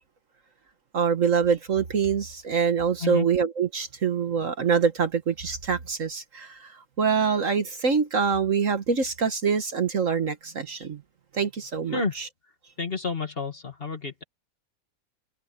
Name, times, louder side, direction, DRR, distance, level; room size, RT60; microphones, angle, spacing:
voice 1, 0.9-11.0 11.3-12.3, right 6 dB, 50° right, 1.6 m, -25 dB
voice 2, 12.8-14.2, left 4 dB, 35° left, 2.0 m, -30 dB
open air
omnidirectional pair, 1.8 m